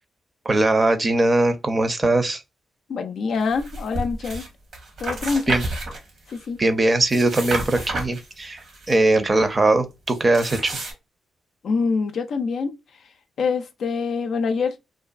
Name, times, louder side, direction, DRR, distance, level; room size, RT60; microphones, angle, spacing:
voice 1, 0.5-2.4 5.5-5.6 6.6-10.8, right 2 dB, 35° right, 0.6 m, -20 dB
voice 2, 2.9-4.5 5.0-5.5 6.3-6.6 9.7-9.8 11.6-12.8 13.4-14.7, left 5 dB, 70° left, 0.4 m, -25 dB
sound 1, 3.5-4.5 4.7-6.5 6.9-9.0 10.1-10.9, right 2 dB, 70° right, 1.0 m, -31 dB
2.5 x 2.4 x 2.3 m
supercardioid pair, 45°, 0 cm